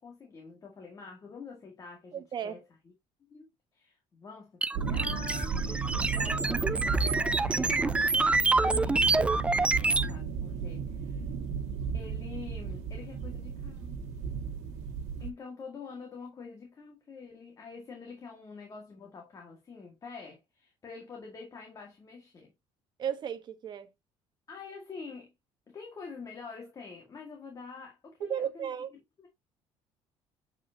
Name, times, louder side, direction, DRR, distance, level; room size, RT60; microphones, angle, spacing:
voice 1, 0.0-2.6 3.3-3.5 3.7-5.6 6.1-11.3 11.9-14.0 15.2-22.5 24.5-25.3 25.7-28.7 29.2-29.3, left 5 dB, 30° left, 1.9 m, -46 dB
voice 2, 2.1-2.6 23.0-23.9 28.2-28.9, right 9 dB, 40° right, 1.2 m, -34 dB
sound 1, 4.6-10.1, right 3 dB, 10° right, 0.3 m, -27 dB
sound 2, 4.7-15.3, right 6 dB, 85° right, 1.6 m, -35 dB
7.7 x 5.0 x 2.8 m
cardioid pair, 135°, 11 cm